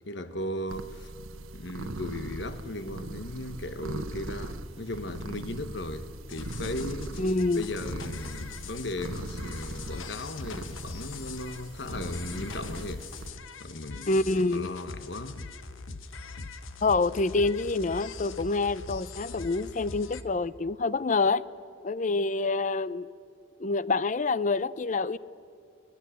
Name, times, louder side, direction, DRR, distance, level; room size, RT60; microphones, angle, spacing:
voice 1, 0.1-1.1 1.5-7.2 7.5-13.3 13.6-14.2 14.5-15.4, left 1 dB, 55° left, 1.1 m, -37 dB
sound 1, 0.7-13.3, right 1 dB, 90° right, 1.2 m, -40 dB
sound 2, 6.3-20.2, left 4 dB, 75° left, 1.1 m, -42 dB
voice 2, 7.2-7.7 14.1-14.7 16.8-21.4 21.8-23.1 23.6-25.2, left 3 dB, 35° left, 0.5 m, -27 dB
21.5 x 20.5 x 8.3 m
head